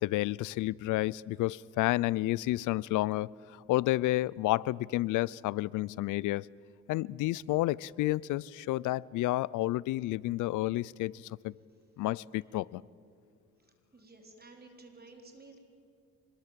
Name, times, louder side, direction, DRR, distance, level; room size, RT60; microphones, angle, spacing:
voice 1, 0.0-3.3 3.7-6.5 6.9-11.5 12.0-12.8, left 17 dB, 85° left, 0.5 m, -30 dB
voice 2, 13.9-15.6, right 3 dB, 30° right, 4.4 m, -53 dB
25.0 x 21.0 x 7.5 m
cardioid pair, 90°, 30 cm